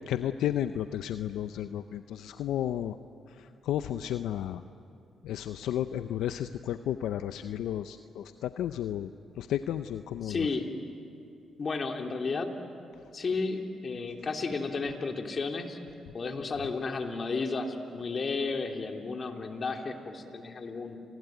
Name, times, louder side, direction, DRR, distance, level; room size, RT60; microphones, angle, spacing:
voice 1, 0.1-3.0 3.4-4.6 5.2-9.1 9.4-10.5, left 11 dB, 85° left, 10 dB, 0.6 m, -33 dB
voice 2, 10.2-10.7 11.6-12.5 13.1-15.8 16.1-21.0, left 4 dB, 50° left, 3 dB, 3.2 m, -33 dB
30.0 x 21.0 x 9.3 m, 2.6 s
supercardioid pair, 55°, 0 cm